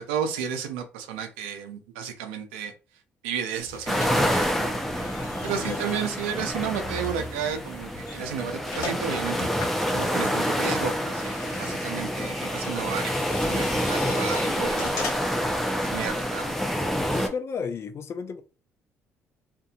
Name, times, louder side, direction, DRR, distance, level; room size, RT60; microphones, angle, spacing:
voice 1, 0.0-2.7 3.2-4.7 5.4-9.5 9.9-13.1 13.5-15.1 15.8-16.6 17.1-17.2, right 8 dB, 85° right, 0.5 m, -32 dB
sound 1, 3.6-15.5, left 3 dB, 65° left, 0.9 m, -40 dB
sound 2, 3.9-17.3, equal, 5° left, 0.7 m, -27 dB
voice 2, 17.2-18.4, left 6 dB, 45° left, 0.5 m, -33 dB
2.6 x 2.5 x 2.5 m
hypercardioid pair, 55°, 6 cm